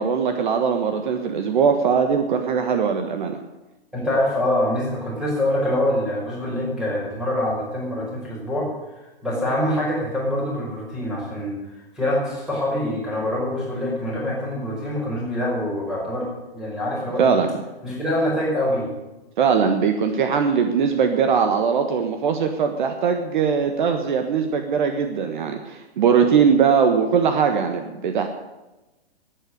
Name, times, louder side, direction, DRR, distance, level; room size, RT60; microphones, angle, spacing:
voice 1, 0.0-3.4 17.2-17.5 19.4-28.3, right 6 dB, 50° right, 6 dB, 1.4 m, -20 dB
voice 2, 3.9-8.7 9.2-11.6 12.0-16.3 16.5-17.3 17.8-18.9, left 1 dB, ahead, -5 dB, 5.3 m, -25 dB
12.5 x 9.2 x 9.8 m, 1.0 s
hypercardioid pair, 160°, 30 cm